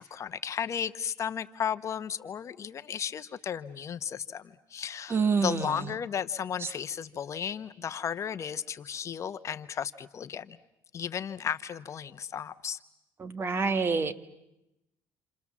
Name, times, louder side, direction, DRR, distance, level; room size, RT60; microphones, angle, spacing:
voice 1, 0.0-10.6 10.9-12.8, left 8 dB, 45° left, 12 dB, 1.1 m, -34 dB
voice 2, 5.1-5.9 6.6-6.7 13.2-14.2, right 5 dB, 35° right, 11 dB, 1.5 m, -27 dB
29.0 x 28.0 x 7.3 m, 0.89 s
cardioid pair, 95°, 7 cm